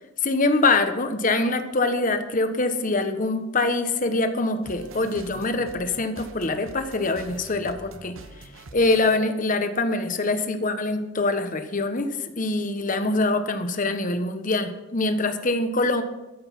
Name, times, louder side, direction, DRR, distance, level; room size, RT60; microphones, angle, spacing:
voice 1, 0.2-8.2 8.7-16.0, left 2 dB, 40° left, 8 dB, 1.1 m, -24 dB
sound 1, 4.6-9.2, right 2 dB, 90° right, 1.0 m, -45 dB
13.5 x 7.9 x 5.9 m, 1.0 s
head